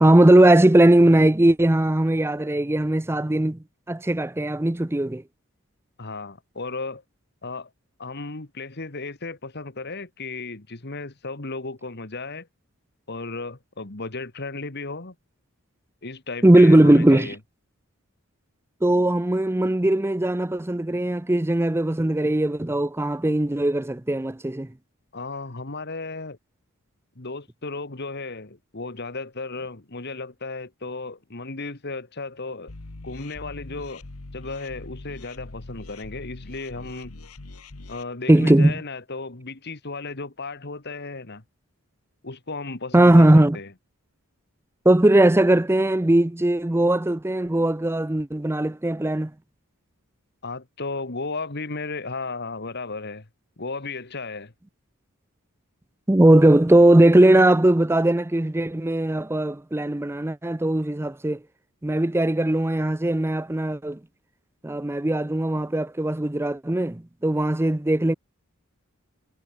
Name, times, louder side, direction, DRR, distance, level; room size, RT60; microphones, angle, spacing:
voice 1, 0.0-3.6 3.9-5.2 16.4-17.3 18.8-24.7 38.3-38.7 42.9-43.6 44.8-49.3 56.1-61.4 61.8-64.0 64.6-68.1, right 1 dB, 10° right, 0.5 m, -19 dB
voice 2, 6.0-7.0 7.4-7.7 8.0-12.5 13.1-15.2 16.0-17.4 25.1-26.4 27.2-32.7 33.0-34.0 34.3-37.1 37.9-41.4 42.2-43.7 50.4-53.3 53.6-54.5, left 3 dB, 50° left, 2.0 m, -34 dB
sound 1, 32.7-38.0, left 2 dB, 85° left, 1.4 m, -42 dB
head